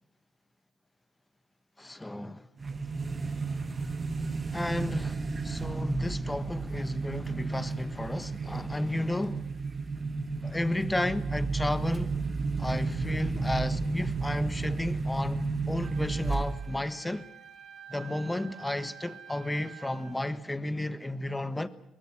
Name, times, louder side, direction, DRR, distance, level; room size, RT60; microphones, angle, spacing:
voice 1, 1.8-2.5 4.5-9.5 10.4-12.1 12.6-17.2 17.9-21.7, left 1 dB, 10° left, 1.4 m, -33 dB
sound 1, 2.6-16.9, right 3 dB, 30° right, 1.8 m, -32 dB
Wind instrument woodwind instrument, 15.8-20.3, right 7 dB, 65° right, 4.8 m, -49 dB
23.0 x 20.0 x 7.4 m
cardioid pair, 90°, 0 cm